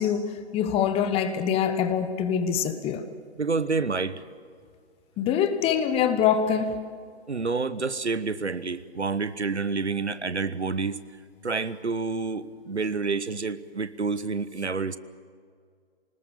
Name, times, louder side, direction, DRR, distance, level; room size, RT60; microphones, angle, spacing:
voice 1, 0.0-3.0 5.2-6.8, left 8 dB, 15° left, 10 dB, 1.2 m, -24 dB
voice 2, 3.4-4.2 7.3-11.0 11.4-15.0, right 4 dB, 90° right, 15 dB, 1.1 m, -28 dB
25.0 x 19.5 x 7.2 m, 2.1 s
figure-of-eight pair, 130°, 33 cm